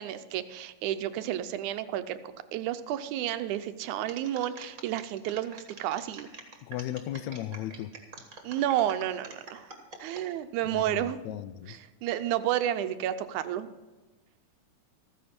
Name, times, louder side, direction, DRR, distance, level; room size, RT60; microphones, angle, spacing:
voice 1, 0.0-2.2 2.5-6.3 8.4-9.7 10.0-11.2 11.7-13.7, right 12 dB, 80° right, 11 dB, 2.0 m, -31 dB
sound 1, 4.1-10.2 10.7-11.1, right 4 dB, 35° right, 1.5 m, -47 dB
voice 2, 6.6-7.9 10.7-11.8, left 12 dB, 80° left, 14 dB, 1.6 m, -36 dB
14.5 x 14.0 x 4.4 m, 1.2 s
omnidirectional pair, 3.7 m